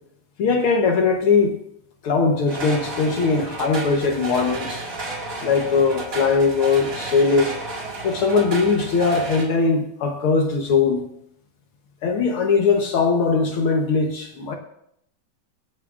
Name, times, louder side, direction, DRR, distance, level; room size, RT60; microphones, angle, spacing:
voice 1, 0.4-1.6 2.0-4.8 5.4-7.6 8.0-11.0 12.0-14.5, left 4 dB, 70° left, 3 dB, 1.3 m, -20 dB
sound 1, 2.5-9.5, right 2 dB, 30° right, 1.9 m, -32 dB
25.5 x 8.5 x 2.5 m, 0.72 s
omnidirectional pair, 3.8 m